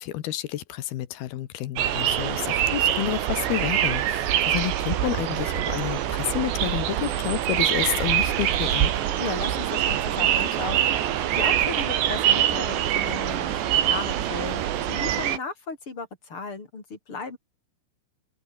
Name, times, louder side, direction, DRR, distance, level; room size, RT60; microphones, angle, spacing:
voice 1, 0.0-8.9, left 13 dB, 65° left, 2.8 m, -30 dB
sound 1, 1.8-15.4, right 11 dB, 65° right, 4.1 m, -24 dB
voice 2, 9.2-14.6 14.9-17.4, left 4 dB, 25° left, 5.2 m, -35 dB
omnidirectional pair, 5.8 m